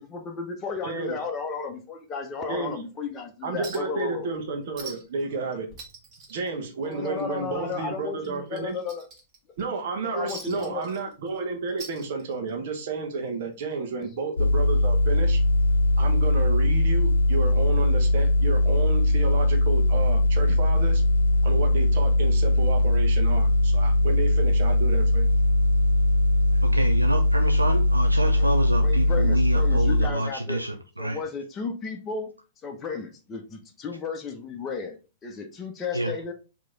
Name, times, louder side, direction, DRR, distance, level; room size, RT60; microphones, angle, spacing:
voice 1, 0.0-4.3 4.8-4.9 6.8-9.1 10.0-10.8 13.8-14.1 28.4-28.5 28.8-30.6 31.0-32.3 32.6-36.3, left 5 dB, 20° left, 3 dB, 0.8 m, -34 dB
voice 2, 0.8-1.2 2.5-2.8 3.4-5.7 6.3-8.7 9.6-15.4 16.0-21.0 21.4-25.3, right 4 dB, 50° right, 4 dB, 1.0 m, -31 dB
Chink clink, 3.6-4.0 4.3-4.4 4.8-5.2 5.5-7.2 7.6-7.7 8.2-9.6 10.3-11.4 11.7-12.6 13.7-13.8, right 4 dB, 30° right, 1.7 m, -43 dB
sound 1, 14.4-30.1, left 1 dB, 75° left, 0.4 m, -20 dB
voice 3, 26.6-31.2 35.9-36.1, right 2 dB, 85° right, 5 dB, 0.5 m, -28 dB
4.7 x 2.9 x 3.8 m, 0.31 s
figure-of-eight pair, 105°, 0 cm